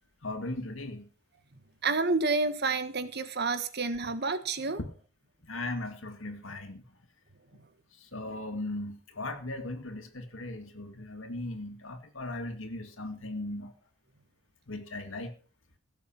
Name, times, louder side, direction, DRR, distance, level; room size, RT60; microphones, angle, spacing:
voice 1, 0.2-1.1 4.8-4.9 5.4-6.8 8.0-13.7 14.7-15.3, left 2 dB, 70° left, 6 dB, 2.3 m, -38 dB
voice 2, 1.8-4.8, right 3 dB, 50° right, 11 dB, 1.4 m, -29 dB
17.0 x 7.4 x 5.9 m, 0.39 s
head